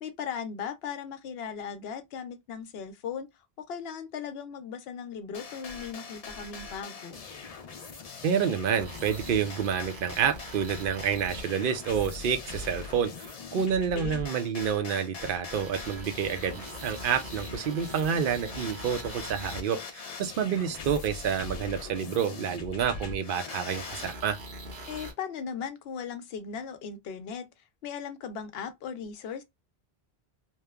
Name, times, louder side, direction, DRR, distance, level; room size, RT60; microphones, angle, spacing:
voice 1, 0.0-3.3 3.7-7.2 13.5-14.2 24.9-27.5 27.8-29.4, left 7 dB, 75° left, 0.8 m, -38 dB
sound 1, 5.3-24.1, left 4 dB, 50° left, 0.5 m, -42 dB
voice 2, 8.2-24.4, right 7 dB, 65° right, 0.7 m, -29 dB
sound 2, 8.7-11.9 12.4-12.9 13.6-13.7 14.6-14.7 15.5-19.8 20.7-20.8 21.8-21.9 22.8-22.9 23.7-25.1, right 1 dB, 80° right, 1.1 m, -43 dB
3.0 x 2.0 x 2.2 m
omnidirectional pair, 1.0 m